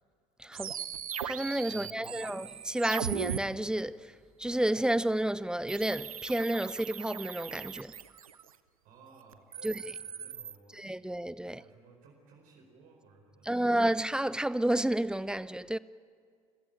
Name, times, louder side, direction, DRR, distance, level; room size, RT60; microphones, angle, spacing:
voice 1, 0.4-0.7 1.2-4.1 4.4-7.9 9.6-9.8 10.7-11.6 13.5-15.8, right 1 dB, 5° right, 0.5 m, -30 dB
sound 1, 0.5-3.4 5.7-8.5 9.3-10.6, right 8 dB, 75° right, 0.7 m, -39 dB
voice 2, 1.7-2.3 8.8-11.1 11.4-13.7, right 4 dB, 50° right, 4.6 m, -58 dB
30.0 x 15.5 x 8.9 m
figure-of-eight pair, 70°, 18 cm